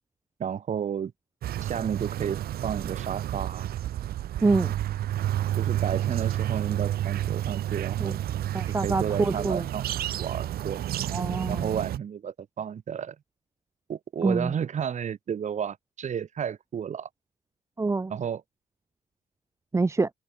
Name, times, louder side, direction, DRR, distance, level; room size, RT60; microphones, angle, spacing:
voice 1, 0.4-1.1 1.6-3.7 5.6-8.2 8.7-9.9 10.2-10.8 11.5-13.2 13.9-17.1 18.1-18.4, right 8 dB, 45° right, 7.8 m, -32 dB
sound 1, 1.4-12.0, right 12 dB, 65° right, 3.1 m, -30 dB
voice 2, 4.4-4.7 8.0-8.1 8.5-9.7 11.1-11.7 14.2-14.5 17.8-18.1 19.7-20.1, right 3 dB, 15° right, 1.2 m, -25 dB
cardioid pair, 110°, 17 cm